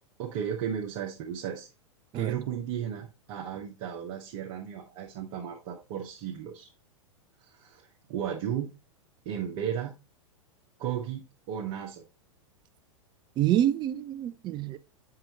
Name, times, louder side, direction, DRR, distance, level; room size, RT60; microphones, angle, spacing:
voice 1, 0.2-1.7 2.1-6.7 7.5-8.7 9.2-10.0 10.8-12.0, right 9 dB, 45° right, 1.4 m, -34 dB
voice 2, 13.4-14.8, right 12 dB, 25° right, 0.5 m, -27 dB
7.6 x 5.8 x 2.9 m
figure-of-eight pair, 95°, 17 cm